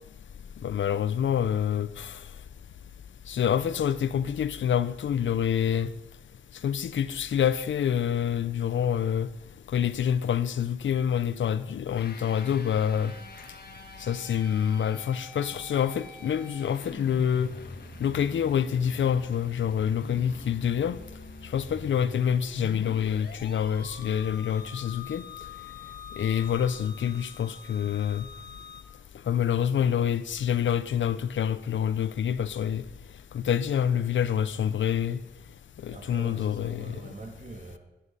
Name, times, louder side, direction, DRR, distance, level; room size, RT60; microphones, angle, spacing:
voice 1, 0.6-2.1 3.3-5.9 6.6-9.3 9.7-13.1 14.0-17.5 18.0-21.0 21.5-25.2 26.2-28.3 29.3-32.8 33.3-35.2 35.8-37.0, left 8 dB, 90° left, 0.5 m, -27 dB
sound 1, 12.0-28.8, left 4 dB, 55° left, 1.4 m, -44 dB
voice 2, 35.9-37.8, right 2 dB, 45° right, 1.8 m, -43 dB
10.0 x 9.2 x 5.4 m
wide cardioid pair, 145°, 19 cm